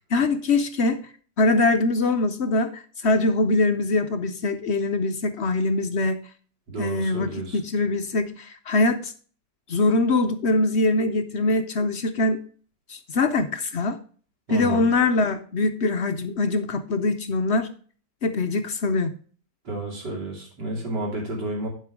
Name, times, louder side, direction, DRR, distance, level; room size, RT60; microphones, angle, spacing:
voice 1, 0.1-1.0 1.4-6.2 6.8-9.1 9.7-12.4 12.9-14.0 14.5-17.7 18.2-19.1, left 2 dB, 60° left, 8 dB, 0.7 m, -23 dB
voice 2, 6.7-7.6 14.5-14.9 19.6-21.7, right 1 dB, 90° right, -8 dB, 3.6 m, -31 dB
11.0 x 5.4 x 4.9 m, 0.42 s
omnidirectional pair, 1.8 m